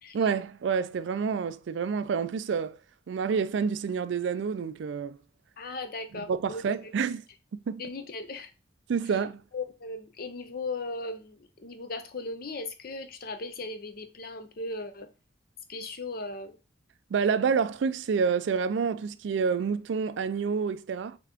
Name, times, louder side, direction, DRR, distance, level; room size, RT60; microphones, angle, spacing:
voice 1, 0.1-2.8 3.1-5.2 6.3-7.2 7.7-7.8 8.9-9.4 17.1-21.2, right 6 dB, 70° right, 0.3 m, -28 dB
voice 2, 5.6-6.6 7.8-8.5 9.5-15.1 15.7-16.6, left 3 dB, 50° left, 0.6 m, -37 dB
4.0 x 3.7 x 2.8 m
head